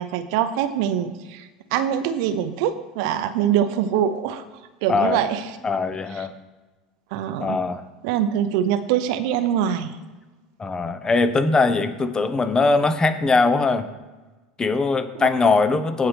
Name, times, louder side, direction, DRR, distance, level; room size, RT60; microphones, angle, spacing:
voice 1, 0.0-4.4 4.8-5.5 6.2-6.3 7.1-7.6 8.0-10.0 15.1-15.3, right 10 dB, 65° right, 11 dB, 0.8 m, -24 dB
voice 2, 4.9-5.2 5.6-6.3 7.4-7.8 10.6-13.9 14.6-16.1, left 3 dB, 20° left, 11 dB, 1.0 m, -21 dB
17.0 x 5.7 x 3.5 m, 1.2 s
hypercardioid pair, 80°, 3 cm